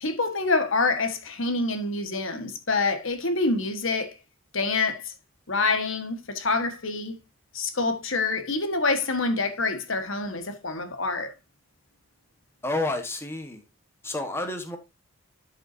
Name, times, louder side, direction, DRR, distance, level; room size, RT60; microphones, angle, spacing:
voice 1, 0.0-4.2 4.5-5.1 5.5-7.2 7.5-11.3, left 3 dB, 65° left, 1.4 m, -26 dB
voice 2, 12.6-13.6 14.0-14.8, left 2 dB, 10° left, 1.2 m, -30 dB
11.5 x 5.9 x 2.7 m
head